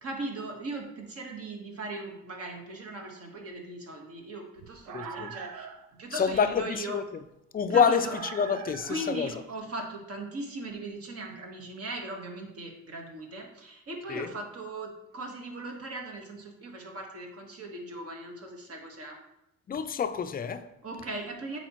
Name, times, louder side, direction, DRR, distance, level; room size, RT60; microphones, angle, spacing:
voice 1, 0.0-5.7 6.0-7.0 7.7-8.2 8.9-19.2 20.8-21.6, right 2 dB, 50° right, 1.5 m, -39 dB
sound 1, 4.6-5.9 7.8-9.3, right 8 dB, 90° right, 0.6 m, -42 dB
voice 2, 4.9-5.3 6.1-7.0 7.5-9.3 14.1-14.3 19.7-20.7, left 6 dB, 30° left, 0.4 m, -27 dB
7.8 x 4.4 x 3.0 m
cardioid pair, 95°, 30 cm